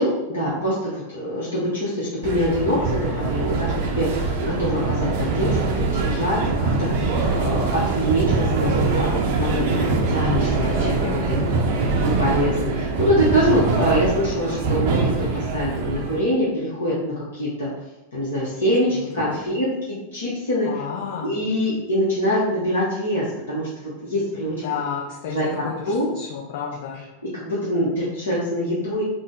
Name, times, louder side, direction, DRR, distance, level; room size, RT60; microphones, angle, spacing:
voice 1, 0.0-11.2 11.7-17.7 18.1-19.7 20.1-20.8 21.2-24.5 25.2-26.1 27.3-29.0, equal, 70° left, -7 dB, 0.8 m, -24 dB
sound 1, 2.2-16.2, right 3 dB, 50° right, 0.5 m, -23 dB
voice 2, 10.6-11.2 12.0-12.1 18.9-19.4 20.6-21.3 24.6-27.0, left 7 dB, 50° left, -3 dB, 0.5 m, -31 dB
3.7 x 2.0 x 3.7 m, 1.0 s
figure-of-eight pair, 90°, 0 cm